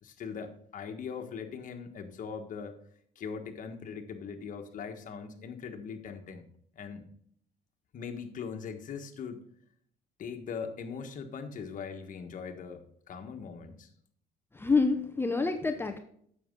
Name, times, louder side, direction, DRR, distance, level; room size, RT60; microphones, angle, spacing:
voice 1, 0.0-2.7 3.1-6.4 6.7-7.1 7.9-9.4 10.2-13.9, left 6 dB, 50° left, 6 dB, 1.4 m, -40 dB
voice 2, 14.5-16.0, left 4 dB, 15° left, 6 dB, 0.8 m, -27 dB
9.3 x 7.1 x 3.7 m, 0.65 s
cardioid pair, 110°, 17 cm